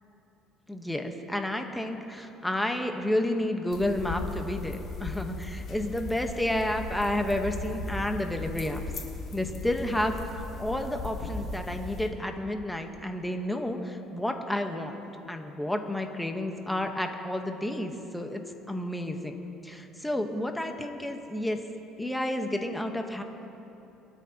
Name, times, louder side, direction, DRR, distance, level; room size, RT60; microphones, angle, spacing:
voice 1, 0.7-8.8 9.3-10.2 10.6-18.4 18.7-19.3 19.6-21.6 22.0-23.2, left 1 dB, 5° left, 4 dB, 1.0 m, -31 dB
sound 1, 3.7-12.1, left 3 dB, 45° left, 2.5 m, -37 dB
23.0 x 13.0 x 2.8 m, 2.9 s
cardioid pair, 125°, 0 cm